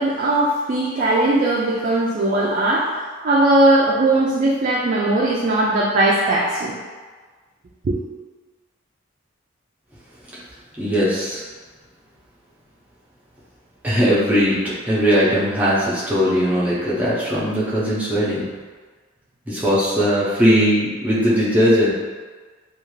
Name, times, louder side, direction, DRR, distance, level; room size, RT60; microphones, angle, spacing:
voice 1, 0.0-2.9 3.2-6.8 7.8-8.0, right 2 dB, 40° right, -5 dB, 0.3 m, -19 dB
voice 2, 10.8-11.4 13.8-18.5 19.5-21.9, equal, 10° right, -9 dB, 0.6 m, -19 dB
2.5 x 2.4 x 3.0 m, 1.4 s
head